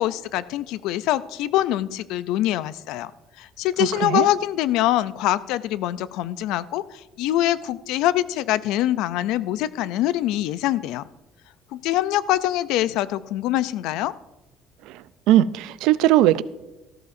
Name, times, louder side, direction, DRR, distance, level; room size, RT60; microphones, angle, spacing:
voice 1, 0.0-3.1 3.4-11.0 11.7-14.1, left 14 dB, 80° left, 0.4 m, -24 dB
voice 2, 15.3-16.4, right 13 dB, 85° right, 0.4 m, -18 dB
14.0 x 13.5 x 2.6 m
cardioid pair, 140°, 0 cm